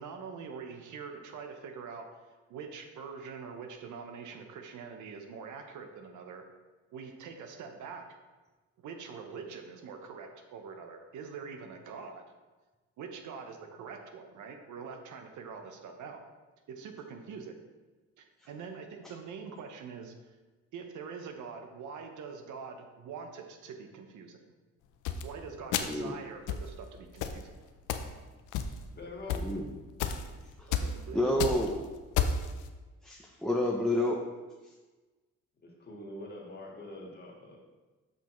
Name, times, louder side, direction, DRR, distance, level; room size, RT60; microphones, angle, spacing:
voice 1, 0.0-2.1 2.5-6.4 6.9-8.0 8.8-12.2 13.0-16.2 16.7-17.5 18.2-20.4 20.7-24.4 25.2-27.7 30.8-31.6, right 5 dB, 75° right, 5 dB, 0.9 m, -44 dB
sound 1, 25.0-25.2 25.7-26.0 26.5-26.7 27.2-27.4 27.9-28.1 28.5-28.9 29.3-29.4 30.0-30.3 30.7-30.9 31.2-31.7 32.1-32.5, left 7 dB, 90° left, 0.6 m, -30 dB
voice 2, 25.8-26.2 29.4-29.7 30.6-30.7 31.1-31.8 33.0-34.2, left 1 dB, ahead, -1 dB, 0.7 m, -29 dB
voice 3, 29.0-29.5 35.6-37.6, left 1 dB, 35° left, -2 dB, 1.8 m, -44 dB
6.6 x 5.9 x 3.1 m, 1.3 s
cardioid pair, 90°, 30 cm